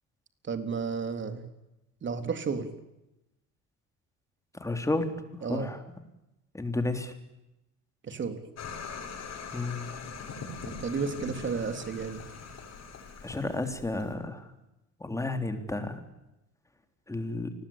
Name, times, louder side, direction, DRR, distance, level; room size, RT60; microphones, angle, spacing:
voice 1, 0.4-1.4 2.0-2.7 5.4-5.7 8.0-8.4 10.6-12.2, right 5 dB, 35° right, 8 dB, 3.5 m, -32 dB
voice 2, 4.5-5.1 5.5-5.8 6.5-7.1 9.5-9.8 13.2-14.5 15.0-16.0 17.1-17.5, left 2 dB, 10° left, 7 dB, 3.5 m, -31 dB
sound 1, 8.6-14.1, left 5 dB, 55° left, 7.3 m, -42 dB
29.5 x 21.0 x 8.8 m, 0.93 s
cardioid pair, 130°, 32 cm